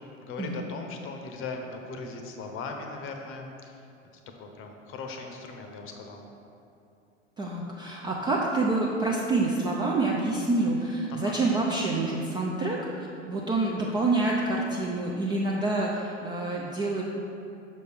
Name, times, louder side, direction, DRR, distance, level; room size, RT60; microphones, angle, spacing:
voice 1, 0.2-3.9 4.4-6.2 11.1-11.4, left 3 dB, 35° left, 4 dB, 0.7 m, -39 dB
voice 2, 7.4-17.0, right 2 dB, 15° right, -3 dB, 0.3 m, -27 dB
6.2 x 5.2 x 3.4 m, 2.6 s
figure-of-eight pair, 80°, 37 cm